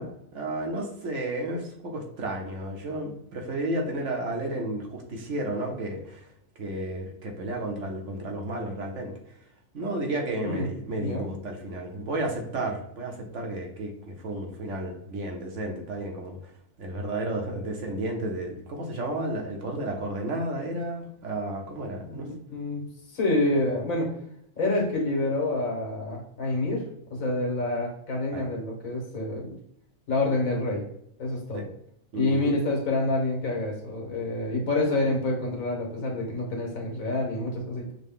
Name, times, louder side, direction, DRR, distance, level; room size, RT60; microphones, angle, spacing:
voice 1, 0.0-6.3 6.6-9.1 9.7-16.4 16.8-22.3 28.3-28.4 31.5-31.7 32.1-32.5, right 1 dB, 65° right, 2 dB, 1.2 m, -32 dB
voice 2, 10.9-11.3 22.0-22.8 23.1-24.1 24.6-26.8 27.1-29.6 30.1-30.8 31.2-31.6 32.1-37.9, left 2 dB, 80° left, 0 dB, 1.6 m, -27 dB
6.5 x 2.2 x 3.6 m, 0.75 s
omnidirectional pair, 1.4 m